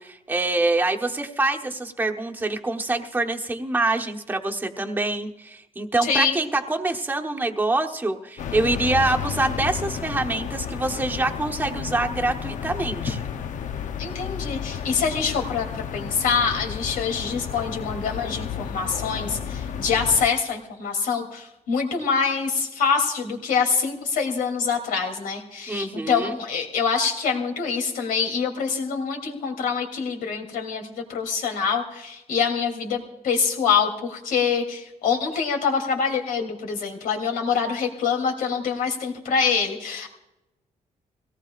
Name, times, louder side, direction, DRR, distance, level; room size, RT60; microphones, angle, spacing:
voice 1, 0.0-13.2 25.7-26.4, right 2 dB, 15° right, 2 dB, 1.1 m, -25 dB
voice 2, 6.0-6.4 14.0-40.1, left 6 dB, 90° left, 1 dB, 2.9 m, -25 dB
sound 1, 8.4-20.3, left 8 dB, 65° left, 0.7 m, -32 dB
22.5 x 18.0 x 2.5 m, 0.91 s
cardioid pair, 140°, 14 cm